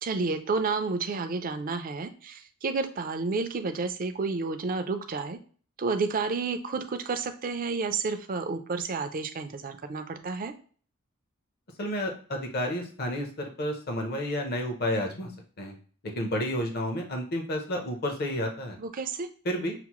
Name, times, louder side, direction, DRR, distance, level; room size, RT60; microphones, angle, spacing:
voice 1, 0.0-5.4 5.8-10.5 18.8-19.3, right 4 dB, 40° right, 8 dB, 0.4 m, -30 dB
voice 2, 11.8-15.3 15.6-15.7 16.2-18.8 19.5-19.8, equal, 45° left, 3 dB, 0.7 m, -31 dB
5.8 x 2.0 x 3.0 m, 0.44 s
head